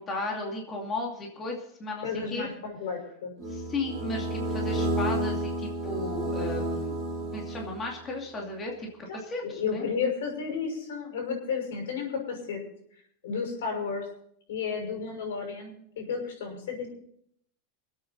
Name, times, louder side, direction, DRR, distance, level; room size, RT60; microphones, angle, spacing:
voice 1, 0.0-2.5 3.5-7.0 7.3-8.9 9.1-9.9, left 2 dB, 20° left, -1 dB, 2.6 m, -35 dB
voice 2, 2.0-3.3 9.1-12.6 13.2-14.1 14.5-16.9, left 5 dB, 85° left, 2 dB, 6.1 m, -32 dB
sound 1, 3.4-8.0, right 1 dB, 25° right, 4.4 m, -31 dB
25.5 x 8.7 x 4.1 m, 0.68 s
supercardioid pair, 155°, 0 cm